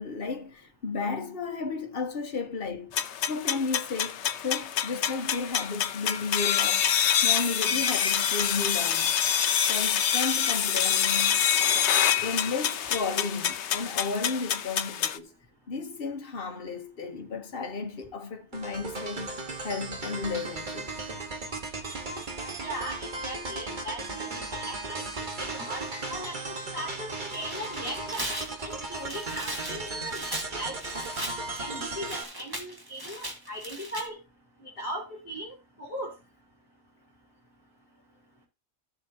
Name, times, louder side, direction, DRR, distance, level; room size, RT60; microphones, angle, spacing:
voice 1, 0.0-3.0 3.3-6.9 7.2-9.1 9.7-11.5 12.2-15.3 15.7-20.9, left 4 dB, 55° left, 1.4 m, -33 dB
sound 1, 2.9-15.2, left 9 dB, 80° left, 1.0 m, -26 dB
sound 2, 18.5-32.2, right 2 dB, 45° right, 1.5 m, -36 dB
voice 2, 22.6-25.1 25.4-28.3 28.6-31.1 31.6-34.2 34.8-36.1, right 1 dB, 30° left, 3.1 m, -38 dB
Tearing, 27.2-34.0, right 1 dB, 20° right, 1.8 m, -38 dB
14.0 x 7.3 x 2.8 m
omnidirectional pair, 1.2 m